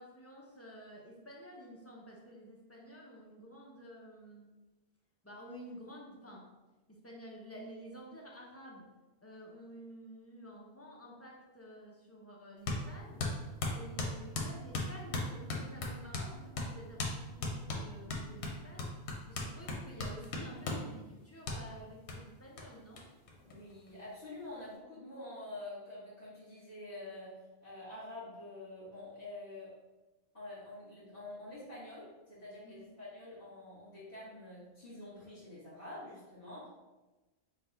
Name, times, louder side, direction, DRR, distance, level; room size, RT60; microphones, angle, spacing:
voice 1, 0.0-4.5 5.2-6.5 6.9-8.9 9.2-13.2 13.7-18.9 19.3-23.1 32.6-32.9, equal, 20° left, -2 dB, 0.4 m, -51 dB
sound 1, 12.7-12.8 13.2-16.3 16.6-16.7 17.0-17.2 17.4-20.9 21.5-21.6 22.1-22.2 22.6-22.7 23.0-23.1 23.3-24.0, left 2 dB, 80° left, 1.0 m, -36 dB
voice 2, 23.4-27.4 27.6-29.8 30.3-36.7, left 2 dB, 60° left, -12 dB, 1.6 m, -47 dB
3.9 x 2.3 x 3.9 m, 1.1 s
omnidirectional pair, 1.1 m